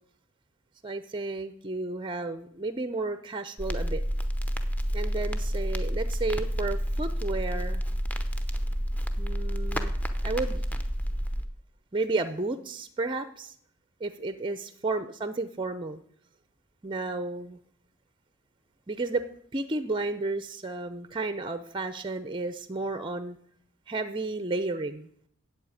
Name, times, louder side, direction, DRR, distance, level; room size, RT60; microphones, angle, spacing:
voice 1, 0.8-4.0 4.9-7.8 9.2-9.9 10.2-10.6 11.9-13.5 14.0-16.0 16.8-17.6 18.9-19.3 19.5-23.4 23.9-25.1, right 3 dB, 20° right, 12 dB, 0.6 m, -32 dB
Crackle, 3.6-11.4, equal, 5° left, 0.8 m, -29 dB
8.3 x 7.8 x 8.9 m, 0.65 s
head